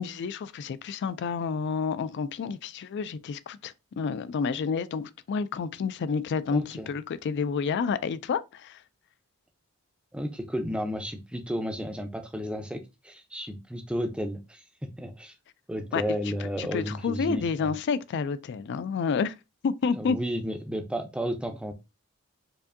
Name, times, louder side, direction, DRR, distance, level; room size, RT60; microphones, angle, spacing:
voice 1, 0.0-8.8 15.9-16.0 16.6-19.4 19.6-20.2, left 5 dB, 50° left, 0.3 m, -29 dB
voice 2, 6.5-6.9 10.1-15.3 15.7-17.7 20.0-21.7, equal, 5° right, 0.5 m, -33 dB
4.7 x 2.6 x 2.5 m
head